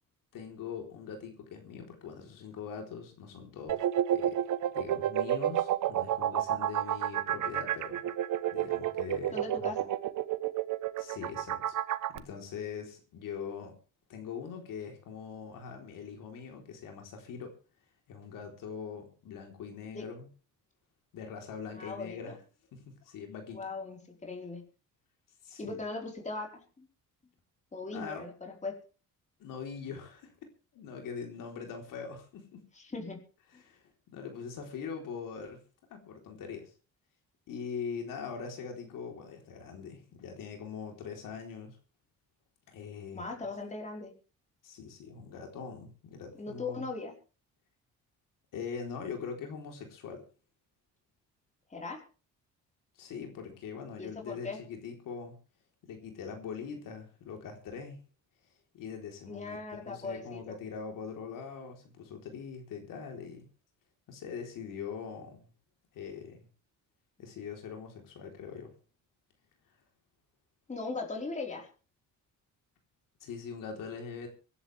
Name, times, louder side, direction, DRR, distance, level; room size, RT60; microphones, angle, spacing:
voice 1, 0.3-3.8 4.1-4.4 4.7-8.0 8.5-9.4 11.0-11.8 12.1-13.8 14.1-17.5 18.1-20.3 21.1-22.4 22.7-23.6 25.4-25.8 27.9-28.3 29.4-30.3 30.7-32.6 33.6-35.6 35.9-36.7 37.5-41.8 42.7-43.2 44.6-46.9 48.5-50.2 53.0-55.4 55.9-58.0 58.7-59.6 59.8-63.5 64.1-65.5 65.9-66.5 67.2-68.7 73.2-74.3, left 6 dB, 80° left, 4.0 m, -42 dB
sound 1, 3.7-12.2, right 11 dB, 70° right, 1.1 m, -30 dB
voice 2, 9.3-9.9 19.9-20.1 21.7-22.4 23.5-24.6 25.6-26.9 27.7-28.7 32.7-33.2 43.1-44.1 46.4-47.1 51.7-52.0 54.0-54.6 59.3-60.6 70.7-71.7, left 3 dB, 20° left, 4.5 m, -39 dB
25.0 x 11.0 x 3.5 m
cardioid pair, 115°, 32 cm